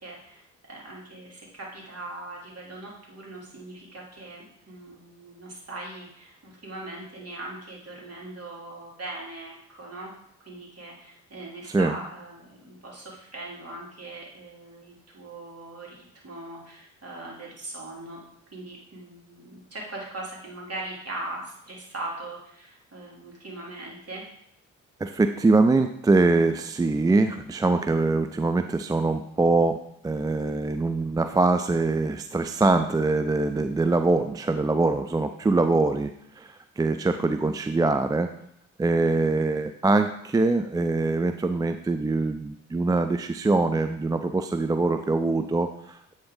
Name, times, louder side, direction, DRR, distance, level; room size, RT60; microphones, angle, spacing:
voice 1, 0.0-10.1 10.4-18.2 18.5-24.2, right 2 dB, 40° right, -3 dB, 2.8 m, -40 dB
voice 2, 25.0-29.8 30.0-38.3 38.8-46.1, right 3 dB, 10° right, 8 dB, 0.3 m, -23 dB
8.6 x 3.9 x 3.7 m, 0.73 s
hypercardioid pair, 40°, 39 cm